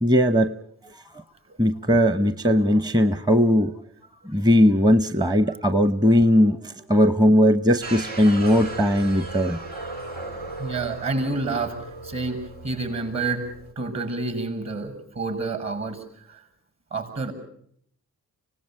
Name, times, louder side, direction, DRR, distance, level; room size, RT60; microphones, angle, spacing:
voice 1, 0.0-0.5 1.6-3.7 4.2-9.6, equal, 10° right, 12 dB, 0.9 m, -19 dB
sound 1, 7.8-13.7, right 2 dB, 85° right, 2.2 m, -36 dB
voice 2, 10.6-11.8 12.0-13.5 13.8-16.4 16.9-17.3, right 3 dB, 50° right, 6 dB, 7.3 m, -29 dB
25.5 x 18.0 x 9.1 m, 0.67 s
supercardioid pair, 55°, 35 cm